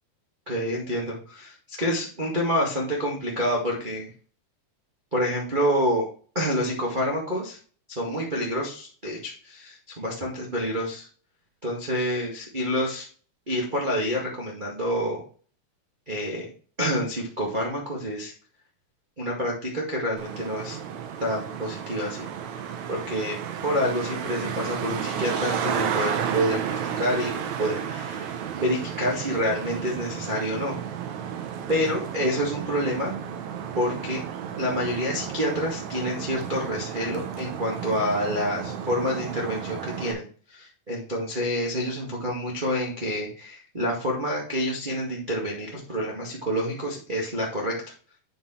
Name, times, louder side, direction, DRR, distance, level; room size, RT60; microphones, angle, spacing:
voice 1, 0.5-4.1 5.1-6.0 6.3-7.6 7.9-11.1 11.6-13.0 13.5-15.2 16.1-16.5 16.8-18.3 19.2-20.8 21.2-22.3 22.9-23.3 23.6-27.3 27.6-28.3 28.6-30.8 31.7-33.1 33.7-34.2 34.6-40.2 40.5-47.7, equal, 40° right, -3 dB, 0.7 m, -28 dB
Traffic noise roadway noise, 20.2-40.1, right 8 dB, 80° right, 1.6 m, -32 dB
9.2 x 4.6 x 4.4 m, 0.41 s
omnidirectional pair, 4.6 m